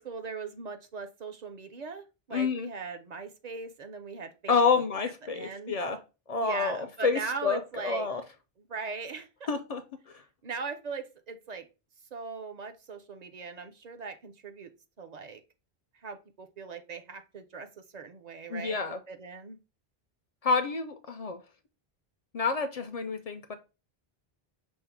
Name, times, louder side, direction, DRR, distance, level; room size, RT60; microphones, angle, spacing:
voice 1, 0.0-4.8 5.3-5.7 6.4-8.1 8.7-9.5 10.4-11.7 12.1-14.7 15.0-15.4 15.9-17.7 17.9-18.8 19.1-19.6, right 5 dB, 50° right, 0.6 m, -39 dB
voice 2, 2.3-2.7 4.5-6.0 6.3-8.2 9.5-10.2 18.5-19.0 20.4-21.4 22.3-23.5, left 5 dB, 55° left, 0.4 m, -29 dB
5.3 x 2.1 x 4.4 m
omnidirectional pair, 1.0 m